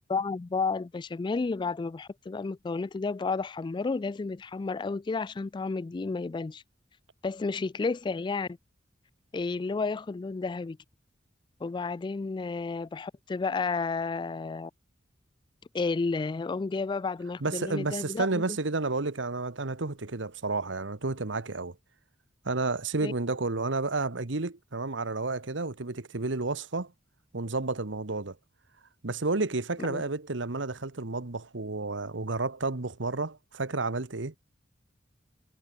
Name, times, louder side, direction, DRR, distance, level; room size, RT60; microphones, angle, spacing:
voice 1, 0.1-6.6 7.2-8.6 9.3-10.8 11.6-14.7 15.7-18.6 23.0-23.1 29.8-30.0, left 4 dB, 25° left, 0.3 m, -31 dB
voice 2, 17.4-21.7 22.4-26.9 27.3-28.4 29.0-34.3, right 3 dB, 90° right, 1.4 m, -31 dB
head